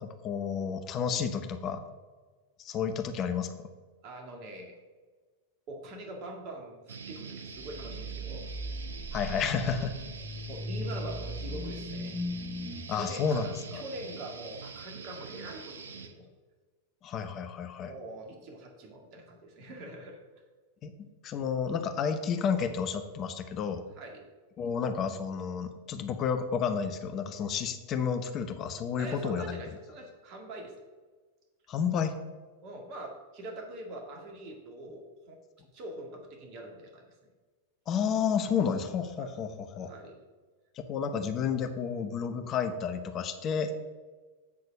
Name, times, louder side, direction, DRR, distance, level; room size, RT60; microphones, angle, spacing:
voice 1, 0.0-1.8 2.6-3.7 9.1-10.0 12.9-13.5 13.7-13.8 17.0-17.9 20.8-20.9 21.2-23.8 24.6-29.6 31.7-32.2 37.9-39.9 40.8-43.7, left 6 dB, 35° left, 8 dB, 0.9 m, -31 dB
voice 2, 4.0-4.7 5.7-8.5 10.5-12.2 12.9-16.3 17.9-20.2 24.0-24.3 29.0-30.7 32.6-35.4 35.7-37.0 39.2-39.3 39.9-40.2, right 1 dB, 45° right, 1 dB, 1.9 m, -43 dB
sound 1, 6.9-16.1, right 5 dB, 75° right, 0.8 m, -44 dB
sound 2, 7.6-12.8, left 1 dB, ahead, 0.6 m, -38 dB
8.5 x 4.2 x 6.5 m, 1.4 s
figure-of-eight pair, 90°, 0 cm